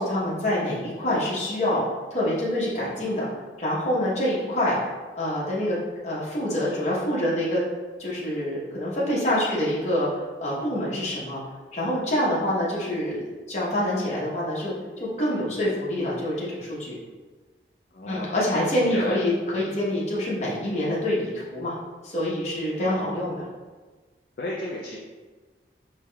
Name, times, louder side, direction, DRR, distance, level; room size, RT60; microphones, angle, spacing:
voice 1, 0.0-1.9 2.1-3.3 3.6-4.8 5.1-5.8 6.0-7.6 8.0-11.4 11.7-17.0 18.1-21.7 22.0-23.4, left 1 dB, 40° left, -6 dB, 1.0 m, -26 dB
voice 2, 17.9-18.3 18.6-19.2 22.8-23.3 24.4-25.0, left 1 dB, 55° left, -4 dB, 0.4 m, -33 dB
4.8 x 2.9 x 2.3 m, 1.3 s
head